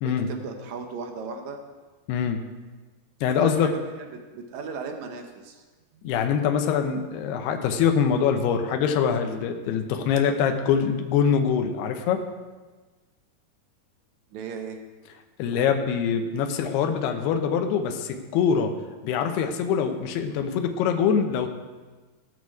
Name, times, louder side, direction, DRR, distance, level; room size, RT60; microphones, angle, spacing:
voice 1, 0.0-1.6 3.3-5.6 5.9-6.2 14.3-14.8, right 5 dB, 80° right, 4 dB, 1.6 m, -37 dB
voice 2, 2.1-2.4 3.2-3.7 6.0-12.2 15.4-18.7 19.0-21.5, left 7 dB, 80° left, 5 dB, 2.9 m, -24 dB
18.0 x 6.5 x 4.7 m, 1.3 s
omnidirectional pair, 4.7 m